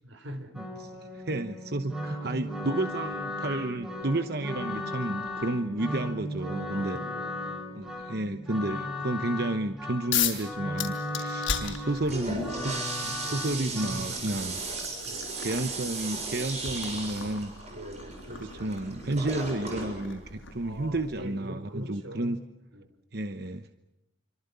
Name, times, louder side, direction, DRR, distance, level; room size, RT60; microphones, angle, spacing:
voice 1, 0.0-0.7 6.7-7.9 13.2-14.4 14.7-15.4 17.7-19.2 20.6-22.4 22.7-22.9, right 1 dB, 80° right, 8 dB, 4.3 m, -43 dB
sound 1, 0.5-14.0, left 1 dB, 5° right, 4.8 m, -36 dB
voice 2, 0.5-7.0 7.7-14.6 15.4-17.5 18.4-22.4 23.1-23.7, right 2 dB, 50° right, 8 dB, 1.0 m, -32 dB
sound 2, 10.1-10.5 10.8-12.3 13.4-13.5 14.1-20.7, left 9 dB, 90° left, 6.2 m, -35 dB
Toilet flush, 11.8-21.2, right 3 dB, 35° right, 7.3 m, -36 dB
28.0 x 25.5 x 6.9 m, 0.91 s
head